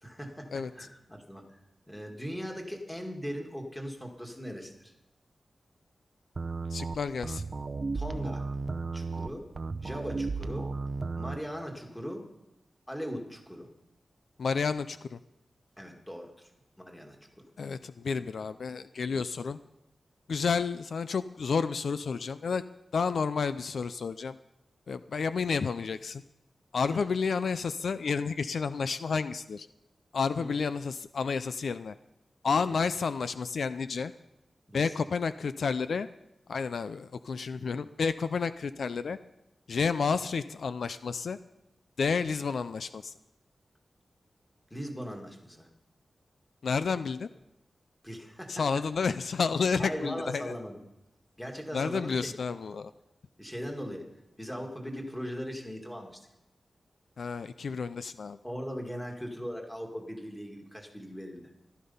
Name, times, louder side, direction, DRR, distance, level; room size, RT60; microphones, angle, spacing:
voice 1, 0.0-1.6 1.9-4.9 7.9-8.5 8.9-9.5 9.8-10.7 11.2-12.2 12.9-13.7 15.8-16.5 16.8-17.2 26.9-27.0 30.3-30.5 32.6-32.8 34.7-35.2 37.5-37.7 44.7-45.7 48.0-48.7 49.8-50.8 51.4-52.3 53.4-54.1 54.4-56.3 58.4-61.4, equal, 5° left, 2 dB, 2.0 m, -39 dB
sound 1, 6.4-11.4, right 4 dB, 40° right, 0.7 m, -34 dB
voice 2, 6.7-7.4 14.4-15.2 17.6-19.6 20.3-22.6 22.9-24.3 24.9-26.2 26.7-29.7 30.1-31.9 32.4-34.1 34.7-36.1 36.5-39.2 39.7-41.4 42.0-43.1 46.6-47.3 48.5-50.6 51.7-52.9 57.2-58.4, left 5 dB, 70° left, 12 dB, 0.4 m, -30 dB
15.0 x 12.5 x 5.5 m, 0.91 s
wide cardioid pair, 175°, 0 cm